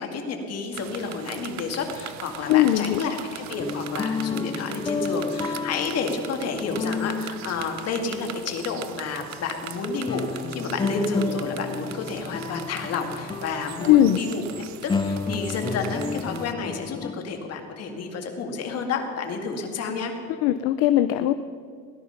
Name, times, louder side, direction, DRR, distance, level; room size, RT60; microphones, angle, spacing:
voice 1, 0.0-20.1, left 4 dB, 45° left, 3 dB, 2.1 m, -30 dB
sound 1, 0.7-16.5, right 11 dB, 50° right, 0.8 m, -41 dB
voice 2, 2.5-3.0 13.9-14.2 20.4-21.3, left 13 dB, 65° left, 10 dB, 0.6 m, -19 dB
sound 2, 3.3-8.6 9.2-9.3 10.1-17.1, left 4 dB, 15° left, 0.5 m, -31 dB
17.5 x 11.0 x 5.8 m, 2.1 s
cardioid pair, 135°, 35 cm